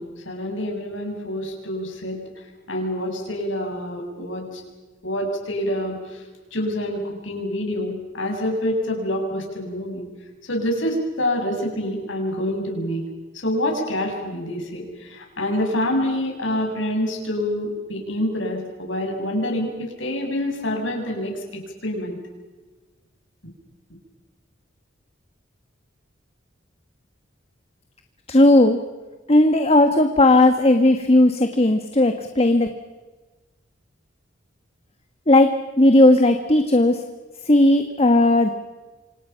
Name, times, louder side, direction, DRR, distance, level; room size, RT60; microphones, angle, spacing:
voice 1, 0.0-2.2 2.7-4.6 5.0-6.2 6.5-10.0 10.4-13.0 13.3-22.2, left 1 dB, 80° left, 2 dB, 7.0 m, -26 dB
voice 2, 28.3-28.8 29.3-32.7 35.3-37.0 37.4-38.5, left 1 dB, 35° left, 6 dB, 1.5 m, -16 dB
28.0 x 26.5 x 5.9 m, 1.3 s
head